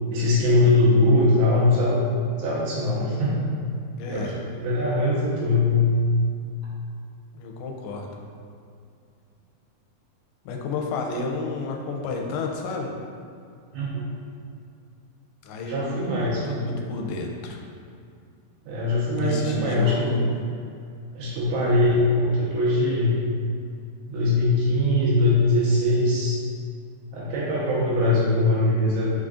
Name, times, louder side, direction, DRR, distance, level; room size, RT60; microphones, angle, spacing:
voice 1, 0.1-2.0 2.4-3.5 4.1-4.3 4.6-5.9 13.7-14.0 15.7-16.6 18.7-20.1 21.1-23.1 24.1-26.4 27.1-29.2, left 2 dB, 80° right, -6 dB, 2.4 m, -21 dB
voice 2, 4.0-4.4 7.3-8.2 10.5-12.9 15.4-17.6 19.2-20.4 21.6-21.8, left 3 dB, 85° left, 1 dB, 2.1 m, -31 dB
5.1 x 3.8 x 2.4 m, 2.4 s
omnidirectional pair, 3.7 m